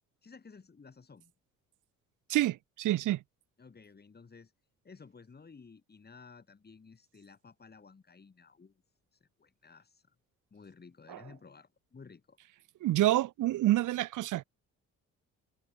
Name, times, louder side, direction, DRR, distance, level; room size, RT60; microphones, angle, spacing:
voice 1, 0.2-1.3 3.6-4.5 4.8-8.8 9.1-10.1 10.5-12.4, left 5 dB, 30° left, 7.9 m, -54 dB
voice 2, 2.3-3.2 11.1-11.2 12.8-14.4, right 15 dB, 85° right, 2.8 m, -28 dB
cardioid pair, 90°, 30 cm